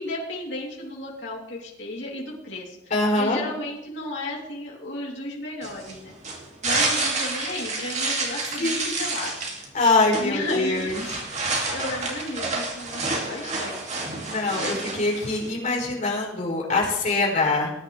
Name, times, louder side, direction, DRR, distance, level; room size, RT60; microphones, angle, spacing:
voice 1, 0.0-2.8 3.2-6.1 6.6-9.3 10.2-11.0 11.7-14.0 14.2-14.4, left 2 dB, 75° left, -3 dB, 3.3 m, -33 dB
voice 2, 2.9-3.4 8.6-9.0 9.7-11.2 14.2-17.7, left 3 dB, 45° left, -2 dB, 4.4 m, -24 dB
sound 1, 5.6-15.5, right 3 dB, 40° right, 2.4 m, -29 dB
20.0 x 10.5 x 3.4 m, 0.90 s
head